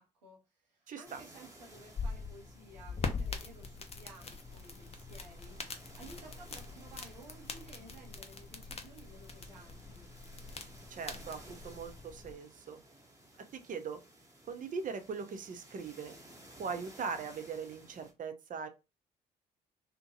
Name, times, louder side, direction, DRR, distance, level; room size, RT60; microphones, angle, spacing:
voice 1, 0.0-10.1, right 2 dB, 90° right, 0.7 m, -55 dB
voice 2, 0.9-1.2 10.9-12.8 13.6-14.0 14.5-16.2 16.6-18.7, right 5 dB, 40° right, 0.6 m, -40 dB
sound 1, 1.0-18.1, right 1 dB, 15° right, 1.0 m, -57 dB
sound 2, 1.7-12.3, left 4 dB, 30° left, 0.6 m, -43 dB
2.6 x 2.1 x 2.7 m
hypercardioid pair, 45°, 21 cm